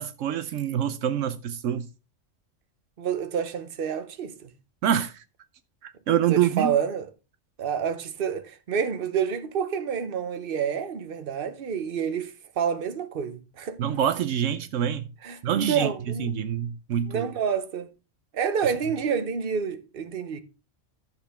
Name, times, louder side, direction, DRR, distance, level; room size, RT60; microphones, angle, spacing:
voice 1, 0.0-1.9 4.8-5.2 5.8-6.7 13.8-15.0 15.4-17.3 18.6-18.7, right 9 dB, 80° right, 1.0 m, -26 dB
voice 2, 3.0-4.5 6.3-7.1 7.6-13.8 15.2-16.3 17.1-17.9 18.3-20.4, right 7 dB, 50° right, 1.1 m, -28 dB
13.0 x 6.9 x 3.4 m
omnidirectional pair, 1.3 m